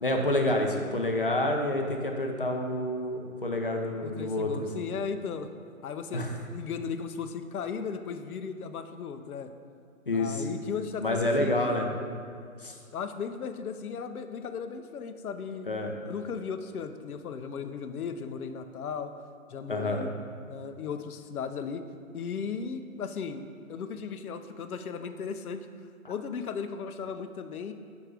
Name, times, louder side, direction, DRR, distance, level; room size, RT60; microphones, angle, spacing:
voice 1, 0.0-4.7 6.1-6.3 10.1-10.4 11.0-11.9 12.6-12.8 15.7-15.9 19.7-20.1 26.0-26.1, left 1 dB, 40° left, 3 dB, 0.5 m, -28 dB
voice 2, 4.0-5.5 5.8-9.5 10.1-11.7 12.9-15.7 16.0-19.1 19.5-20.1 20.5-21.9 22.1-25.7 26.1-27.7, left 6 dB, 85° left, 9 dB, 0.6 m, -36 dB
5.3 x 4.6 x 4.7 m, 2.3 s
hypercardioid pair, 180°, 43 cm